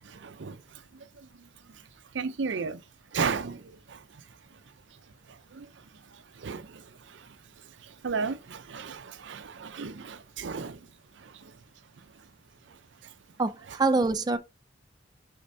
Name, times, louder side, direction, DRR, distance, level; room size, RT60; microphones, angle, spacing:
voice 1, 0.0-1.9 2.1-2.8 3.1-4.6 5.3-11.6 12.0-12.3 12.7-13.1, right 5 dB, 85° right, 0.6 m, -36 dB
voice 2, 13.4-14.4, right 3 dB, 20° right, 0.4 m, -25 dB
8.4 x 4.4 x 2.7 m
head